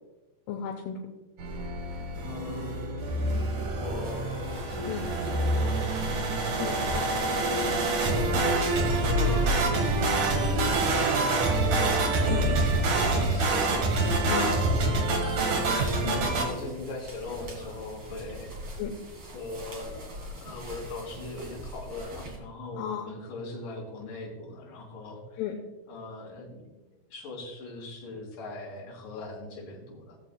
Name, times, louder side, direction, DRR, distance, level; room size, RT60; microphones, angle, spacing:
voice 1, 0.5-1.0 4.9-5.0 6.6-7.2 12.3-12.4 14.3-14.5 16.0-16.3 18.8-18.9 22.7-23.1 25.4-25.5, left 9 dB, 80° left, 1 dB, 3.3 m, -33 dB
sound 1, 1.4-16.5, right 2 dB, 70° right, 1.9 m, -26 dB
voice 2, 2.3-2.9 3.7-5.2 5.6-6.1 8.0-11.2 11.7-14.2 14.6-18.6 19.3-25.4 25.9-30.2, left 2 dB, 45° left, -5 dB, 4.0 m, -40 dB
sound 2, 3.9-22.4, equal, 55° right, 1.5 m, -42 dB
18.5 x 7.4 x 2.2 m, 1.1 s
omnidirectional pair, 5.8 m